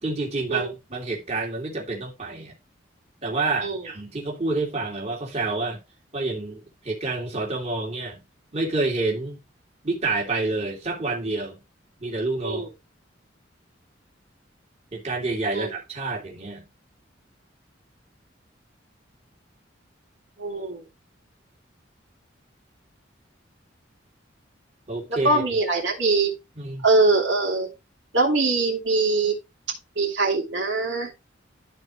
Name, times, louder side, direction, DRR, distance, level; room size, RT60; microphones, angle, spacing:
voice 1, 0.0-2.5 3.2-5.8 6.1-8.2 8.5-9.4 9.8-11.6 12.0-12.7 14.9-16.6 24.9-25.4 26.5-26.8, right 3 dB, 35° right, 2.8 m, -28 dB
voice 2, 20.4-20.8 25.2-26.3 26.8-27.7 28.1-29.4 30.0-31.1, right 3 dB, 75° right, 2.6 m, -22 dB
13.0 x 4.6 x 3.2 m
head